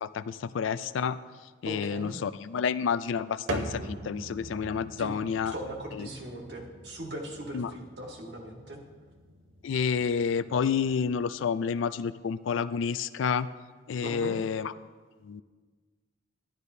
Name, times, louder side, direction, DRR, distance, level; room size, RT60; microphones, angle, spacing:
voice 1, 0.0-1.2 1.6-5.5 6.0-6.1 7.5-7.7 9.6-13.5 13.9-14.7 15.2-15.4, left 6 dB, 85° left, 15 dB, 0.3 m, -29 dB
voice 2, 1.6-2.1 5.0-5.1 5.4-8.8 14.0-14.4, right 1 dB, 60° right, 0 dB, 1.6 m, -39 dB
sound 1, 3.5-11.2, right 2 dB, 80° right, 0.9 m, -42 dB
11.5 x 11.0 x 2.7 m, 1.4 s
head